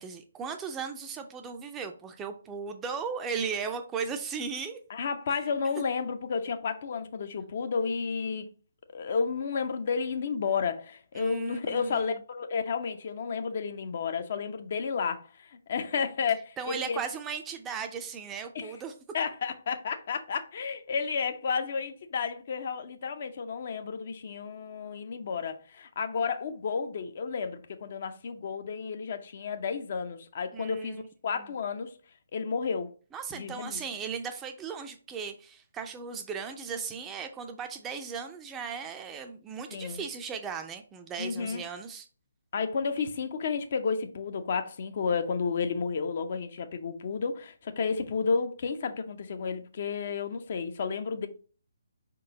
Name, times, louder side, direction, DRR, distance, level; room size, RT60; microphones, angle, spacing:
voice 1, 0.0-4.8 5.3-5.4 11.2-12.2 16.6-18.9 30.5-31.1 31.3-31.5 33.1-42.1, right 6 dB, 15° right, 0.4 m, -37 dB
voice 2, 4.9-8.5 8.9-17.0 18.5-18.7 19.1-31.9 32.3-32.9 33.3-33.8 39.7-40.0 41.2-41.6 42.5-51.3, left 5 dB, 45° left, 0.5 m, -32 dB
5.1 x 3.7 x 2.8 m
figure-of-eight pair, 140°, 0 cm